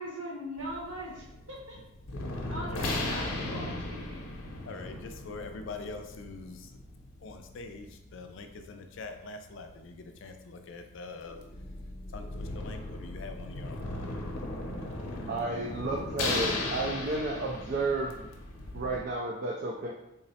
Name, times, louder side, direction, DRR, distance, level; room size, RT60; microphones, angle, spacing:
voice 1, 0.0-1.8 2.5-4.0, equal, 70° right, -5 dB, 0.9 m, -40 dB
sound 1, 0.6-19.0, left 2 dB, 90° left, 0.7 m, -37 dB
voice 2, 4.7-6.8 7.2-11.4 12.1-13.8, left 3 dB, 60° left, 6 dB, 0.4 m, -44 dB
voice 3, 15.3-18.3 18.7-19.9, right 2 dB, 45° right, 0 dB, 0.3 m, -32 dB
3.7 x 2.0 x 4.1 m, 0.89 s
head